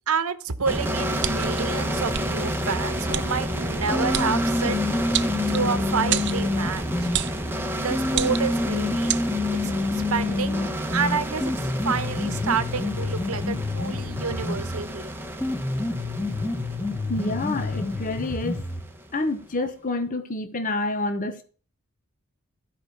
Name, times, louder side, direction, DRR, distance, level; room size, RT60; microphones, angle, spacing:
voice 1, 0.1-5.2 5.5-7.1 7.8-9.4 9.6-15.2, right 5 dB, 80° right, 1.0 m, -29 dB
sound 1, 0.7-19.3, equal, 10° right, 1.0 m, -30 dB
sound 2, 1.2-1.6 2.1-2.3 3.1-3.3 4.1-4.3 5.1-5.7 6.1-6.4 7.1-7.4 8.1-8.6 9.1-9.2, right 12 dB, 55° right, 0.5 m, -27 dB
sound 3, 3.9-7.2 7.9-14.9 15.4-18.9, left 2 dB, 10° left, 2.3 m, -28 dB
voice 2, 17.1-18.6 19.1-21.4, left 2 dB, 40° left, 1.1 m, -28 dB
13.0 x 5.0 x 5.8 m
head